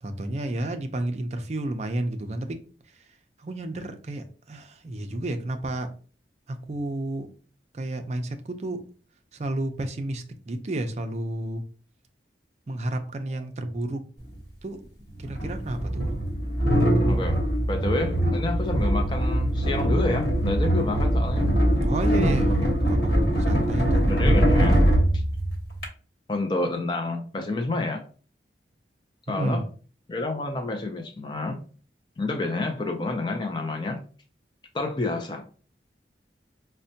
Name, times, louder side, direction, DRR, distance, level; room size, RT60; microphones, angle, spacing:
voice 1, 0.0-2.6 3.0-3.1 3.4-5.9 6.5-7.3 7.7-8.8 9.3-11.6 12.7-14.0 14.6-14.8 15.2-16.1 21.8-24.1 29.3-29.7, right 1 dB, 35° right, 6 dB, 0.4 m, -31 dB
sound 1, 14.2-14.3 15.3-25.9, right 1 dB, 60° left, 1.1 m, -22 dB
voice 2, 17.1-17.4 17.7-21.5 24.1-24.8 25.1-25.2 26.3-28.0 29.3-29.6 30.1-31.6 32.2-34.0 34.7-35.4, left 2 dB, 25° left, 4 dB, 0.4 m, -29 dB
5.2 x 2.1 x 2.7 m, 0.39 s
head